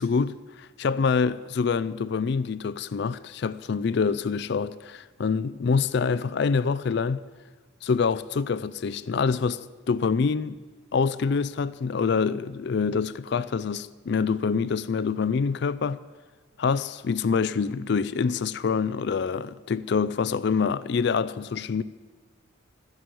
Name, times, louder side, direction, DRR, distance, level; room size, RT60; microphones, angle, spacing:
voice 1, 0.0-7.2 7.8-10.6 10.9-16.0 16.6-21.8, left 5 dB, 55° left, 0.4 m, -26 dB
13.0 x 11.0 x 7.7 m
head